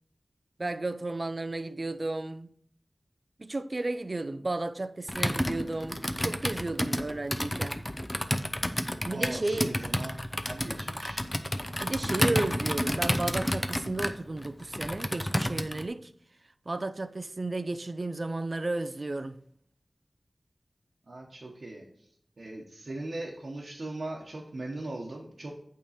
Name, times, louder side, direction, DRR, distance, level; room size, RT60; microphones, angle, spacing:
voice 1, 0.6-2.5 3.4-7.8 9.0-9.7 11.8-16.1 16.7-19.4, right 2 dB, 50° right, 0.4 m, -33 dB
Computer keyboard, 5.1-15.9, left 1 dB, 15° left, 0.5 m, -30 dB
voice 2, 9.1-11.2 21.1-21.8 22.4-25.5, right 2 dB, 70° right, 1.0 m, -39 dB
8.4 x 3.6 x 4.2 m
wide cardioid pair, 65°, 0 cm